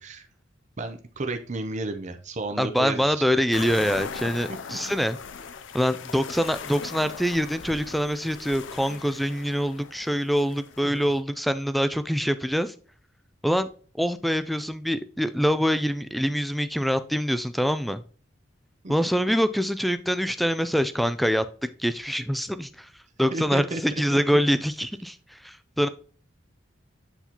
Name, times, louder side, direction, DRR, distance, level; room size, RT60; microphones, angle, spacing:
voice 1, 0.8-3.4 4.7-4.8 10.8-11.0 18.8-18.9 23.3-24.2, right 2 dB, 40° right, 7 dB, 0.6 m, -33 dB
voice 2, 2.6-5.2 5.7-12.7 13.4-13.7 14.0-18.0 18.9-21.5 21.8-22.9 23.2-25.9, equal, ahead, 12 dB, 0.4 m, -25 dB
sound 1, 3.5-11.2, left 6 dB, 80° left, 0.5 m, -39 dB
8.1 x 4.2 x 2.9 m, 0.41 s
head